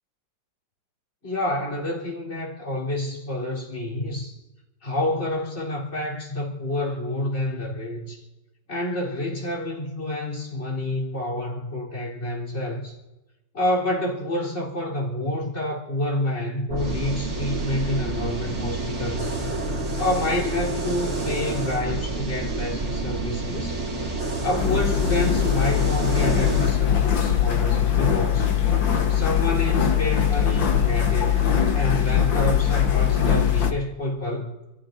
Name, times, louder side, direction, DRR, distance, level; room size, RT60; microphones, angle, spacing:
voice 1, 1.2-4.4 4.8-8.3 8.7-13.0 13.5-19.3 20.0-23.8 24.4-28.6 29.1-31.4 31.7-34.5, left 1 dB, 35° left, 3.9 m, -28 dB
sound 1, 16.7-26.7, right 2 dB, 40° right, 2.6 m, -28 dB
sound 2, 24.6-33.7, left 9 dB, 85° left, 2.0 m, -21 dB
28.5 x 14.5 x 2.6 m
omnidirectional pair, 2.0 m